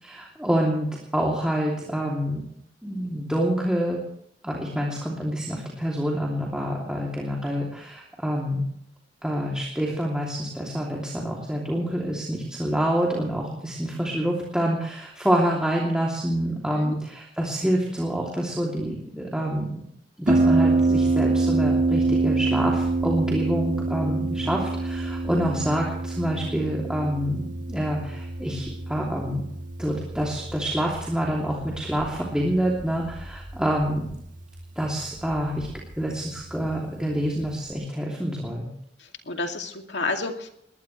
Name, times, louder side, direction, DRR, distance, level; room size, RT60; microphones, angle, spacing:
voice 1, 0.0-2.4 2.8-4.0 4.4-8.7 9.2-19.8 20.2-27.4 27.7-29.4 29.8-34.1 34.8-35.7 36.0-38.7, equal, 5° right, -3 dB, 2.9 m, -27 dB
Harp, 20.3-37.7, right 3 dB, 45° right, 1.9 m, -27 dB
voice 2, 39.0-40.5, left 3 dB, 70° left, 4 dB, 2.5 m, -30 dB
21.5 x 18.5 x 3.3 m, 0.75 s
head